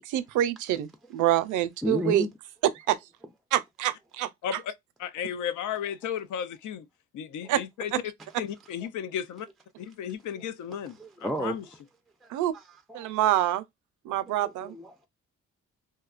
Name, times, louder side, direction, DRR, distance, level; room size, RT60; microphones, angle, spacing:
voice 1, 0.0-2.3 2.8-3.0 3.5-4.3 7.5-7.6 12.3-12.5 12.9-13.6 14.0-14.8, right 13 dB, 90° right, 0.4 m, -26 dB
voice 2, 1.8-2.3 7.4-7.5 11.0-11.6 12.2-12.6 12.9-13.1 14.4-15.1, equal, ahead, 0.3 m, -32 dB
voice 3, 4.4-4.7 5.0-6.9 7.1-7.9 8.4-9.5 9.8-11.6, left 8 dB, 80° left, 0.5 m, -34 dB
2.7 x 2.1 x 2.3 m
cardioid pair, 95°, 29 cm